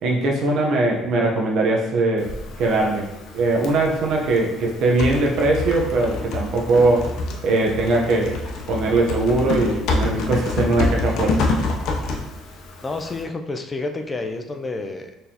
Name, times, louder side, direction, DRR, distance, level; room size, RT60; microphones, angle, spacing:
voice 1, 0.0-3.1 3.3-7.1 7.4-8.4 8.7-11.4, right 2 dB, 55° right, 0 dB, 0.8 m, -20 dB
Typing, 2.2-13.2, left 2 dB, 65° left, 0.6 m, -27 dB
voice 2, 12.8-15.1, left 3 dB, 20° left, 5 dB, 0.4 m, -29 dB
4.2 x 3.3 x 2.8 m, 0.90 s
cardioid pair, 140°, 0 cm